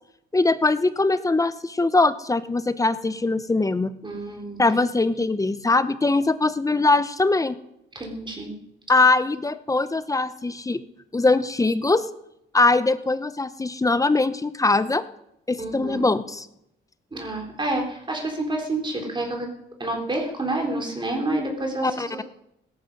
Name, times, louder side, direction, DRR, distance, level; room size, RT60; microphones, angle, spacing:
voice 1, 0.3-3.9 4.6-7.6 8.9-10.8 11.1-12.1 12.5-15.0 15.5-16.5 21.8-22.2, left 3 dB, 15° left, 14 dB, 0.9 m, -21 dB
voice 2, 4.0-4.6 8.0-8.6 15.6-16.1 17.1-19.5 19.8-22.2, right 2 dB, 25° right, 1 dB, 3.8 m, -29 dB
17.0 x 14.0 x 5.5 m, 0.80 s
cardioid pair, 90°, 20 cm